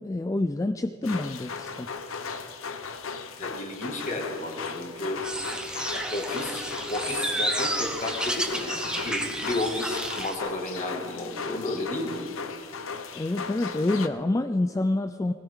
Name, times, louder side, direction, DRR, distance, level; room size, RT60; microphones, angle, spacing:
voice 1, 0.0-1.9 13.1-15.3, left 2 dB, 15° left, 8 dB, 0.3 m, -27 dB
sound 1, 1.0-14.1, left 5 dB, 80° left, 0.9 m, -37 dB
voice 2, 3.4-5.2 5.9-12.3, left 2 dB, 35° left, 2 dB, 2.0 m, -32 dB
sound 2, 5.2-10.4, right 1 dB, 5° right, 1.0 m, -31 dB
20.0 x 16.5 x 3.7 m, 2.2 s
head